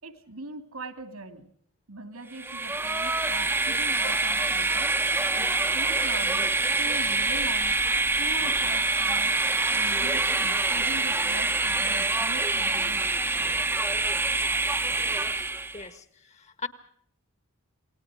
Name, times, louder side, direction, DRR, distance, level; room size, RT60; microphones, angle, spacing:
voice 1, 0.0-1.5 1.9-4.9 5.3-6.5 6.8-7.9 8.2-9.4 9.7-13.2, right 2 dB, 75° right, 10 dB, 2.8 m, -41 dB
Train, 2.3-15.8, right 3 dB, 10° right, 1.0 m, -25 dB
voice 2, 15.7-16.7, left 4 dB, 30° left, 12 dB, 1.6 m, -39 dB
28.0 x 20.5 x 5.0 m, 0.64 s
head